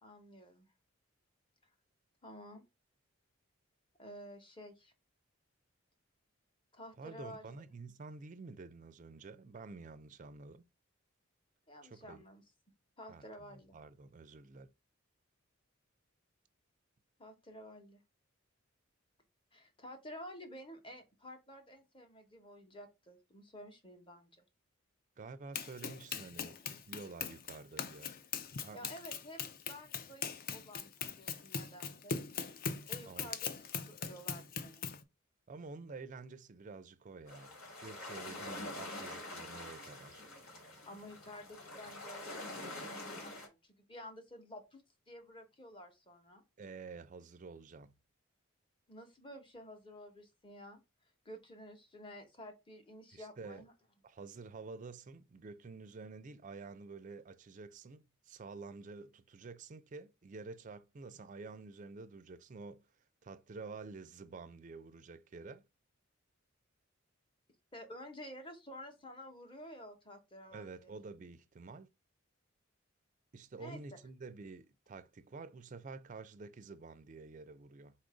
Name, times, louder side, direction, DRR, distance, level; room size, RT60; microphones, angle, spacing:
voice 1, 0.0-0.7 2.2-2.6 4.0-4.9 6.7-7.5 11.7-12.4 13.0-13.8 17.2-18.0 19.5-24.4 28.7-32.2 32.9-34.8 40.9-46.4 48.9-50.8 51.2-53.7 67.7-70.9 73.6-73.8, equal, 25° left, 0.9 m, -51 dB
voice 2, 7.0-10.7 11.8-12.2 13.1-13.2 13.5-14.7 25.2-28.1 28.6-28.9 33.1-33.3 35.5-37.5 37.8-40.2 46.6-47.9 53.1-53.6 54.0-62.9 63.2-65.6 70.5-71.9 73.3-77.9, right 4 dB, 35° right, 0.4 m, -49 dB
Run, 25.5-35.0, left 6 dB, 40° left, 0.4 m, -41 dB
sound 1, 37.3-43.5, left 1 dB, 85° left, 1.9 m, -46 dB
4.1 x 2.6 x 4.8 m
head